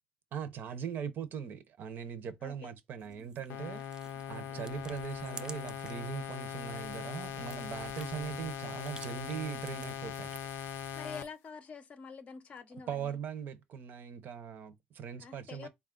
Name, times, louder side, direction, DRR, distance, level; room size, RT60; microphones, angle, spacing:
voice 1, 0.3-3.8 4.3-10.3 12.7-15.7, right 8 dB, 55° right, 0.7 m, -40 dB
voice 2, 2.4-2.7 8.0-8.1 10.9-13.2 15.2-15.7, left 5 dB, 40° left, 0.6 m, -47 dB
sound 1, 3.0-6.1 6.4-10.6, right 4 dB, 20° right, 0.3 m, -52 dB
sound 2, 3.4-11.3, equal, 5° left, 0.7 m, -58 dB
sound 3, 3.5-11.2, left 9 dB, 90° left, 0.6 m, -41 dB
4.0 x 2.3 x 3.7 m
cardioid pair, 145°, 4 cm